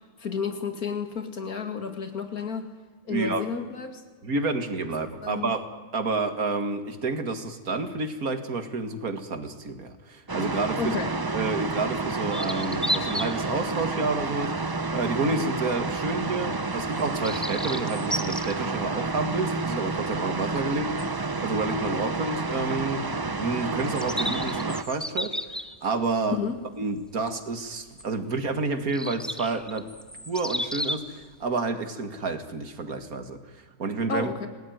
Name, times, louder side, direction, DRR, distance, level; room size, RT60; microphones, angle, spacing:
voice 1, 0.2-2.7 3.0-4.0 5.2-5.5 10.8-11.1 26.3-26.6 34.1-34.5, left 5 dB, 75° left, 7 dB, 2.8 m, -31 dB
voice 2, 3.1-3.4 4.2-5.6 5.9-11.0 11.3-23.0 23.4-25.5 25.8-26.4 26.8-29.9 30.3-34.3, right 3 dB, 70° right, 9 dB, 2.4 m, -29 dB
sound 1, 10.3-24.8, right 3 dB, 25° right, 0.5 m, -30 dB
sound 2, 12.3-13.4 13.9-14.1 15.0-15.1 16.9-18.5 21.0-21.1 21.3-21.4 23.8-26.2 28.0-28.1 28.9-31.1, equal, ahead, 0.9 m, -32 dB
26.5 x 19.0 x 9.4 m, 1.5 s
omnidirectional pair, 1.6 m